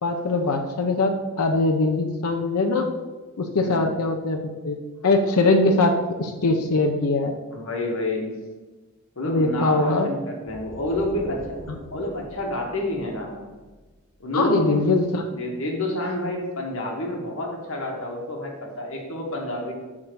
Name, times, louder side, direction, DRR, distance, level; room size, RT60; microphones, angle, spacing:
voice 1, 0.0-2.9 3.4-4.8 5.0-7.3 9.3-10.1 14.3-15.3, left 2 dB, 85° left, 3 dB, 0.6 m, -22 dB
voice 2, 3.6-3.9 7.5-8.4 9.1-11.6 11.9-13.5 14.2-14.9 15.3-19.7, left 1 dB, 65° left, 0 dB, 1.4 m, -29 dB
sound 1, 10.5-14.2, equal, 15° right, 1.9 m, -42 dB
6.6 x 3.6 x 6.2 m, 1.3 s
head